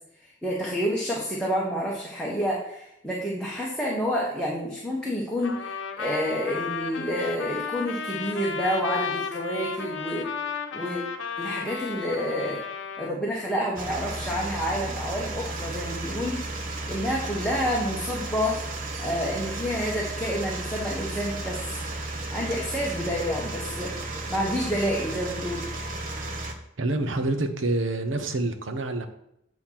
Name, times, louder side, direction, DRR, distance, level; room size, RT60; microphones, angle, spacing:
voice 1, 0.4-10.3 10.7-11.0 11.4-12.6 13.0-18.6 19.0-21.6 22.3-23.9 24.3-25.7, equal, 5° left, -5 dB, 1.1 m, -29 dB
Trumpet, 5.4-13.1, left 6 dB, 80° left, 0.8 m, -33 dB
sound 1, 13.8-26.5, right 2 dB, 45° right, 0.9 m, -34 dB
voice 2, 26.8-29.1, right 2 dB, 80° right, 7 dB, 0.8 m, -27 dB
8.6 x 3.0 x 5.8 m, 0.81 s
head